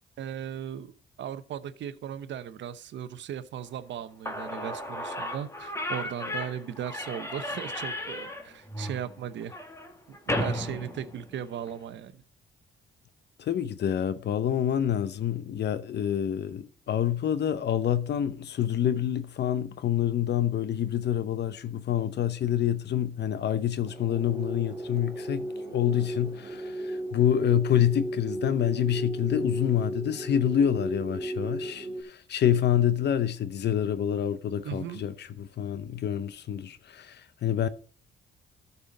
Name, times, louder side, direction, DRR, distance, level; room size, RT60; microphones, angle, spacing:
voice 1, 0.2-0.9 1.2-9.6 10.1-12.2 34.6-35.0, right 9 dB, 65° right, 0.8 m, -37 dB
Slam / Squeak, 3.9-4.0 4.2-11.7, left 1 dB, 15° left, 1.5 m, -35 dB
voice 2, 13.4-37.7, left 10 dB, 60° left, 0.7 m, -27 dB
sound 1, 23.9-32.0, right 1 dB, 15° right, 1.7 m, -35 dB
13.0 x 5.7 x 3.8 m
cardioid pair, 90°, 20 cm